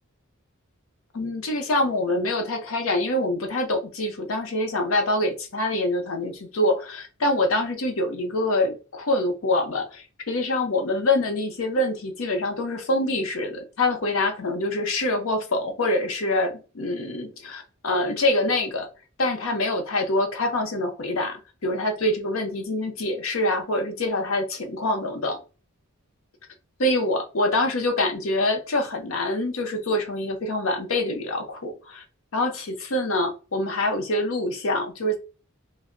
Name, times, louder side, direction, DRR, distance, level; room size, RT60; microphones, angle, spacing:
voice 1, 1.1-18.9 19.2-25.4 26.8-32.0 32.3-35.2, left 1 dB, 80° left, 0.7 m, -25 dB
2.1 x 2.1 x 3.6 m
head